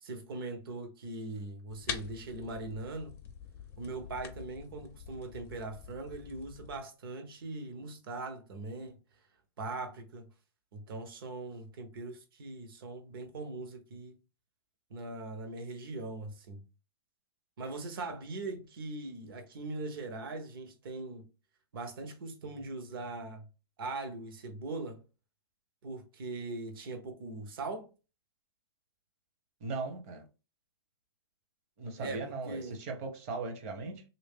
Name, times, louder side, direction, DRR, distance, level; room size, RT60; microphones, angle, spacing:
voice 1, 0.0-3.2 3.8-8.9 9.6-10.2 10.7-14.2 14.9-16.6 17.6-21.2 21.7-23.4 23.8-25.0 25.8-27.9 32.0-32.8, right 2 dB, 60° right, 1.1 m, -41 dB
sound 1, 1.7-6.8, left 8 dB, 15° left, 0.4 m, -45 dB
voice 2, 29.6-30.2 31.8-34.0, right 3 dB, 35° right, 0.9 m, -38 dB
3.4 x 2.7 x 3.5 m
hypercardioid pair, 150°, 14 cm